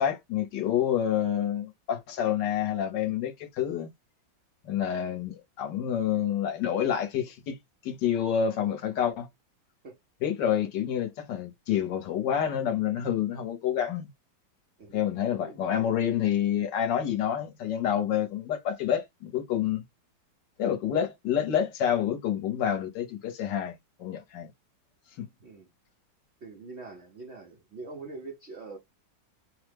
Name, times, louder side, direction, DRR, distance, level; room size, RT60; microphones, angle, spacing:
voice 1, 0.0-3.9 4.6-7.6 7.8-9.3 10.2-14.1 14.9-19.8 20.6-24.5 25.2-25.3, left 9 dB, 70° left, 1.2 m, -28 dB
voice 2, 15.5-15.9 25.4-25.7 26.4-28.8, right 3 dB, 75° right, 0.6 m, -43 dB
3.2 x 2.0 x 3.2 m
omnidirectional pair, 2.2 m